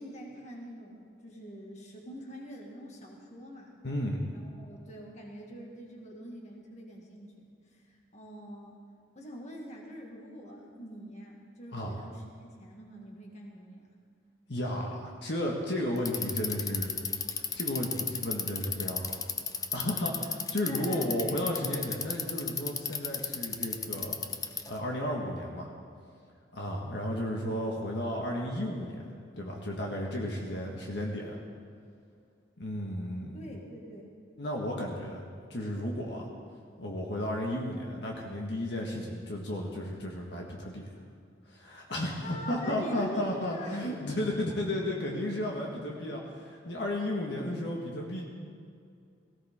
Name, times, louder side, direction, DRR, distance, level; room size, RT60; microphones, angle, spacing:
voice 1, 0.0-3.7 4.3-8.8 9.2-13.9 20.6-21.5 33.3-34.1 42.0-44.2 44.5-44.6, equal, 40° left, 0 dB, 2.0 m, -45 dB
voice 2, 3.8-4.2 11.7-12.0 14.5-16.9 17.3-19.1 19.7-24.2 24.7-25.7 26.5-31.4 32.6-33.4 34.4-35.2 35.5-36.3 36.8-40.9 41.5-48.3, left 1 dB, 65° left, -1 dB, 1.7 m, -33 dB
Bicycle, 16.0-24.8, left 6 dB, 20° left, 0.6 m, -33 dB
18.0 x 16.0 x 3.7 m, 2.3 s
head